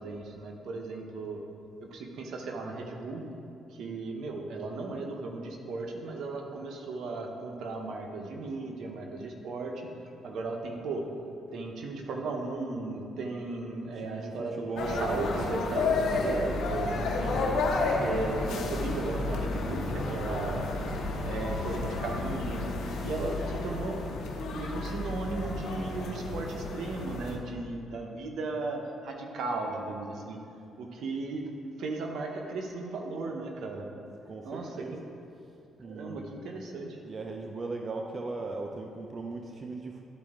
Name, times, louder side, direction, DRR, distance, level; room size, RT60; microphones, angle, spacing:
voice 1, 0.0-1.4 1.8-3.2 3.7-9.9 10.2-11.0 11.5-17.7 18.0-20.6 21.2-24.0 24.5-30.4 30.8-33.9 34.4-35.0 35.8-37.0, right 3 dB, 75° right, 2 dB, 0.9 m, -36 dB
voice 2, 13.9-15.3 20.0-20.6 34.3-35.0 35.8-36.4 37.0-40.0, right 3 dB, 40° right, 2 dB, 0.5 m, -38 dB
sound 1, 14.8-27.4, left 3 dB, 80° left, 1.0 m, -31 dB
12.0 x 4.3 x 3.7 m, 2.6 s
cardioid pair, 90°, 0 cm